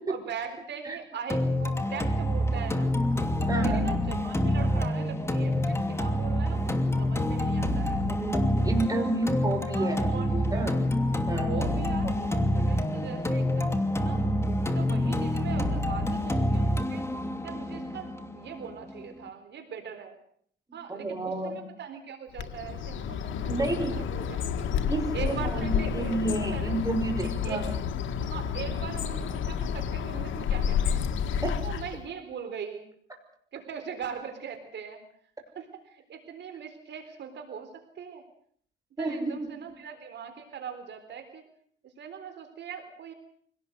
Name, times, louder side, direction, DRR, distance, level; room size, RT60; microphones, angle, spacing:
voice 1, 0.1-3.0 3.4-8.1 9.7-10.6 11.5-14.3 14.6-17.1 17.4-18.1 18.4-20.1 20.7-24.7 25.1-26.7 27.4-27.6 28.2-31.1 31.6-32.9 33.5-35.0 35.6-38.2 39.0-41.4 41.8-43.1, right 7 dB, 60° right, 7 dB, 3.9 m, -41 dB
sound 1, 1.3-19.3, left 1 dB, 15° left, 2.8 m, -27 dB
voice 2, 3.5-3.9 8.0-10.7 11.3-11.6 12.0-12.1 20.9-21.6 23.4-24.0 24.9-27.8 31.4-31.6 39.0-39.4, right 2 dB, 20° right, 4 dB, 6.2 m, -30 dB
Bird, 22.3-32.1, left 7 dB, 75° left, 1.9 m, -30 dB
25.0 x 18.0 x 7.9 m, 0.63 s
cardioid pair, 90°, 20 cm